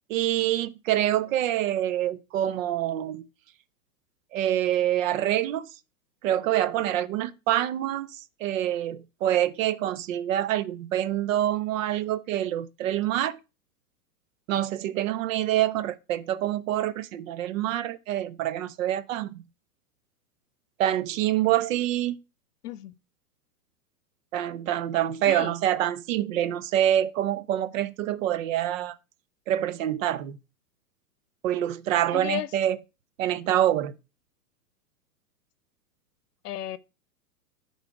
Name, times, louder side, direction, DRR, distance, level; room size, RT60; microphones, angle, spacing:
voice 1, 0.1-3.3 4.3-5.7 6.2-8.1 8.4-13.4 14.5-19.4 20.8-22.2 24.3-29.0 29.5-30.4 31.4-32.8 33.2-33.9, right 12 dB, 55° right, 0.8 m, -26 dB
voice 2, 22.6-22.9 25.3-25.5 32.1-32.5 36.4-36.8, left 13 dB, 75° left, 0.7 m, -33 dB
10.5 x 4.1 x 4.8 m
hypercardioid pair, 120°, 47 cm